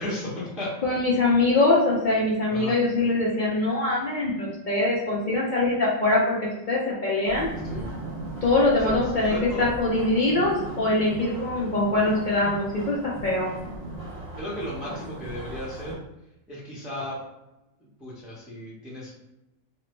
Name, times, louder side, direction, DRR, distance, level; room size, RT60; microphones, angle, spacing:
voice 1, 0.0-0.7 2.5-2.8 7.6-7.9 8.8-9.7 14.3-16.0 16.5-17.2 17.8-19.2, left 1 dB, ahead, -7 dB, 0.6 m, -35 dB
voice 2, 0.8-7.5 8.4-13.5, left 2 dB, 60° left, -4 dB, 0.5 m, -23 dB
sound 1, 7.2-15.9, right 1 dB, 60° right, 0.4 m, -37 dB
3.2 x 2.0 x 3.1 m, 0.92 s
omnidirectional pair, 1.4 m